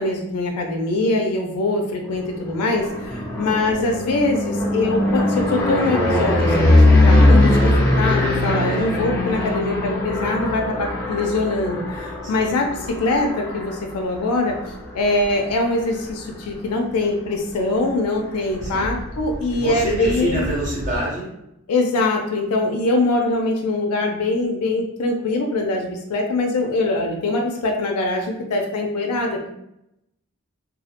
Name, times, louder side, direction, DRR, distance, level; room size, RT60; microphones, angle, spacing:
voice 1, 0.0-14.6 14.9-20.4 21.7-29.5, left 2 dB, 90° left, 2 dB, 0.4 m, -23 dB
sound 1, 2.3-16.3 16.8-17.3 17.5-17.6 17.9-21.0, left 1 dB, 5° left, 0.4 m, -21 dB
voice 2, 3.1-3.5 12.2-12.5 18.6-18.9 19.5-21.3, right 1 dB, 35° right, -5 dB, 0.6 m, -26 dB
2.2 x 2.0 x 2.8 m, 0.83 s
head